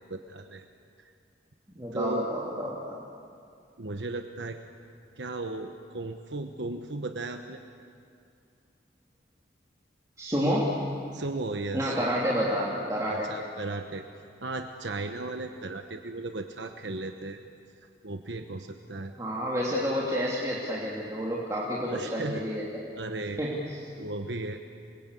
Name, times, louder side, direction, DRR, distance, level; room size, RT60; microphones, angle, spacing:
voice 1, 0.1-0.7 1.0-1.1 1.9-2.3 3.8-4.6 5.2-7.6 11.1-12.1 13.1-14.0 14.4-17.4 18.0-19.1 21.9-22.4 23.0-23.5 24.0-24.6, right 2 dB, 80° right, 5 dB, 1.2 m, -35 dB
voice 2, 1.7-3.0 10.2-10.7 11.7-13.3 19.2-22.7 23.4-23.8, equal, 20° right, -5 dB, 2.9 m, -29 dB
27.5 x 22.0 x 8.4 m, 2.4 s
head